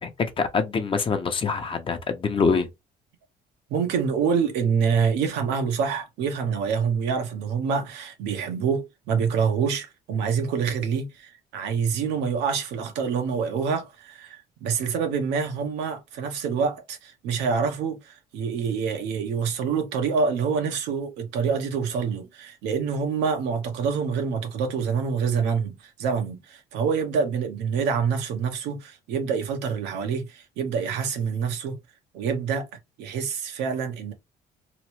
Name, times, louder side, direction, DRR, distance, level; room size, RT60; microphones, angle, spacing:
voice 1, 0.0-2.7, left 5 dB, 30° left, 0.7 m, -25 dB
voice 2, 3.7-31.8 32.1-32.7 33.0-34.1, right 6 dB, 90° right, 0.9 m, -26 dB
3.0 x 2.0 x 3.0 m
cardioid pair, 110°, 17 cm